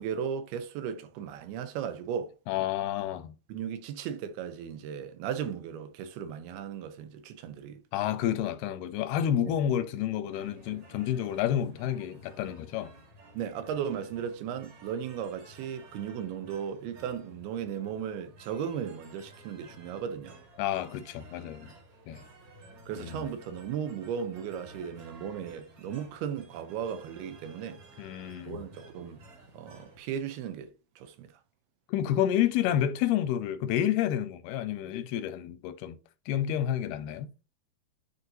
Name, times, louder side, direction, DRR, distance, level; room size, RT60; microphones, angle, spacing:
voice 1, 0.0-2.3 3.5-7.8 9.5-9.6 13.3-20.4 22.9-27.8 28.5-29.2 29.5-31.3, right 8 dB, 85° right, 2.9 m, -36 dB
voice 2, 2.5-3.4 7.9-12.9 20.6-21.7 22.1-22.2 23.0-23.2 28.0-28.7 31.9-36.0 36.3-37.3, left 10 dB, 90° left, 2.7 m, -29 dB
sound 1, 10.3-30.0, right 1 dB, 45° right, 2.4 m, -54 dB
9.9 x 4.3 x 2.7 m
omnidirectional pair, 4.4 m